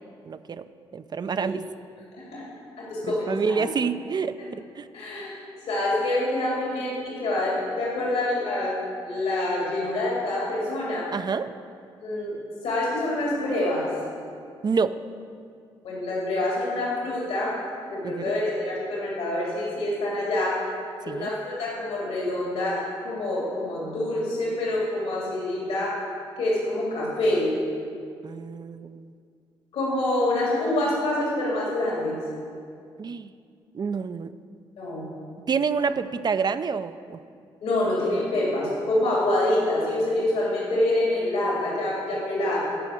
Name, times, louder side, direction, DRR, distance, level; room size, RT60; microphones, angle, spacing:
voice 1, 0.2-0.6 0.9-1.7 3.1-4.9 11.1-11.5 14.6-15.0 18.0-18.2 21.1-21.3 28.2-29.1 33.0-33.3 33.7-34.3 35.5-37.2, right 5 dB, 40° right, 12 dB, 0.5 m, -28 dB
voice 2, 2.8-3.6 4.4-4.5 4.9-5.3 5.7-8.7 9.0-11.1 12.0-12.3 12.6-13.9 15.8-17.6 17.8-20.6 21.0-25.9 26.4-27.5 29.7-32.2 34.8-35.0 37.6-42.6, left 1 dB, 75° left, -5 dB, 2.9 m, -26 dB
12.5 x 5.0 x 7.8 m, 2.3 s
supercardioid pair, 60°, 11 cm